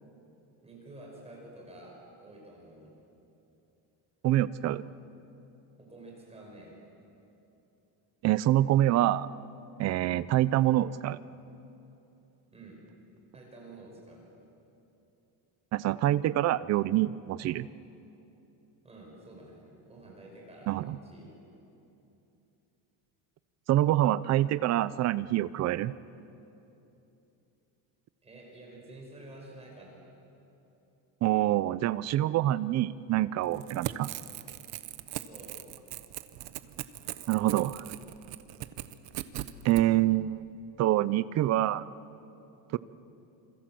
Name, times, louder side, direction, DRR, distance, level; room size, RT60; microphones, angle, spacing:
voice 1, 0.6-2.9 5.8-6.8 12.5-12.8 13.3-14.3 18.8-21.4 28.2-30.0 35.2-35.6, right 2 dB, 15° right, -2 dB, 5.6 m, -49 dB
voice 2, 4.2-4.8 8.2-9.3 9.8-11.2 15.7-17.7 20.7-21.0 23.7-25.9 31.2-34.1 37.3-37.9 39.6-40.5 40.8-41.9 42.7-42.8, right 14 dB, 40° right, 17 dB, 0.6 m, -26 dB
Crackle / Tearing, 33.5-39.8, right 15 dB, 55° right, 1.0 m, -40 dB
27.5 x 26.0 x 7.7 m, 2.9 s
cardioid pair, 170°, 44 cm